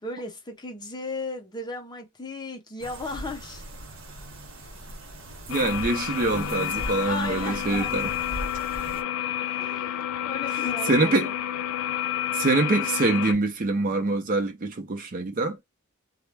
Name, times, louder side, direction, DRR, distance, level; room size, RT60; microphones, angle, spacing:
voice 1, 0.0-3.6 7.1-8.1 9.6-11.4, left 2 dB, 20° left, 0.6 m, -36 dB
sound 1, 2.8-9.0, right 1 dB, 65° right, 0.8 m, -39 dB
sound 2, 5.5-13.3, left 11 dB, 90° left, 0.3 m, -30 dB
voice 2, 5.5-8.1 9.6-9.7 10.8-11.3 12.3-15.6, right 2 dB, 40° right, 0.5 m, -24 dB
2.2 x 2.0 x 3.2 m
head